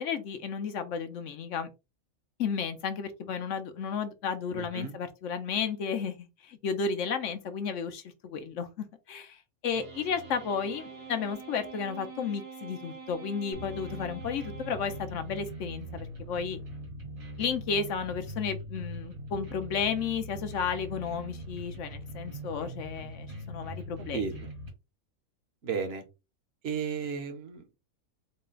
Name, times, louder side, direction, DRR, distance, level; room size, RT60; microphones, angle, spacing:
voice 1, 0.0-1.7 2.4-16.6 17.4-24.2, left 6 dB, 65° left, 1.0 m, -33 dB
voice 2, 4.6-4.9 24.1-24.3 25.6-26.0 26.6-27.6, right 6 dB, 50° right, 1.0 m, -33 dB
sound 1, 9.7-15.5, right 5 dB, 90° right, 1.6 m, -46 dB
sound 2, 13.5-24.7, equal, 70° right, 2.0 m, -41 dB
4.1 x 2.2 x 3.8 m
omnidirectional pair, 1.5 m